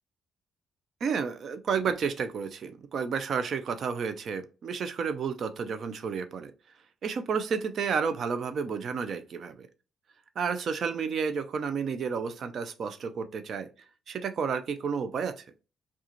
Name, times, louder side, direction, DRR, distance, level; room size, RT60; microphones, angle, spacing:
voice 1, 1.0-6.5 7.0-9.7 10.4-13.7 14.1-15.5, right 6 dB, 60° right, 0.5 m, -31 dB
4.8 x 2.4 x 3.0 m
cardioid pair, 90°, 0 cm